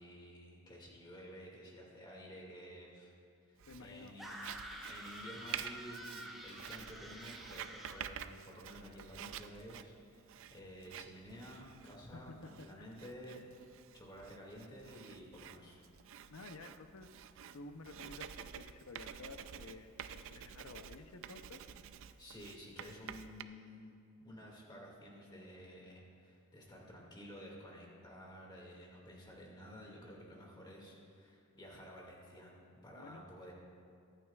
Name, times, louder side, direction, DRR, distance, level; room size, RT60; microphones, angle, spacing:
voice 1, 0.0-3.1 3.5-4.3 4.9-13.5 13.9-15.8 22.2-23.9 24.2-32.5 32.8-33.5, equal, 20° left, -2 dB, 2.1 m, -52 dB
Writing, 3.6-23.4, right 9 dB, 60° right, 0.4 m, -50 dB
voice 2, 3.7-4.2 12.1-13.0 16.3-21.7 33.0-33.3, left 3 dB, 75° left, 8 dB, 0.7 m, -52 dB
sound 1, 4.2-8.1, right 1 dB, ahead, 1.4 m, -48 dB
23.5 x 9.1 x 2.4 m, 2.4 s
head